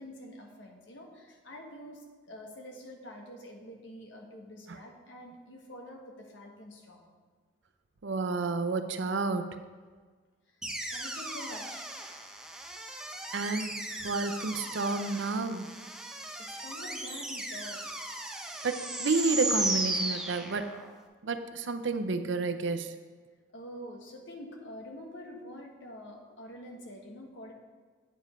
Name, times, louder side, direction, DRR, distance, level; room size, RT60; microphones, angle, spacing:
voice 1, 0.0-7.1 10.5-10.6 10.9-11.9 13.1-13.4 16.4-18.7 23.5-27.5, left 1 dB, 85° left, 1 dB, 1.3 m, -47 dB
voice 2, 8.0-9.5 13.3-13.7 14.0-15.7 18.6-20.7 21.2-22.9, right 3 dB, 80° right, 9 dB, 0.6 m, -30 dB
sound 1, 10.6-20.9, right 1 dB, 5° right, 0.6 m, -36 dB
8.8 x 5.0 x 5.6 m, 1.5 s
head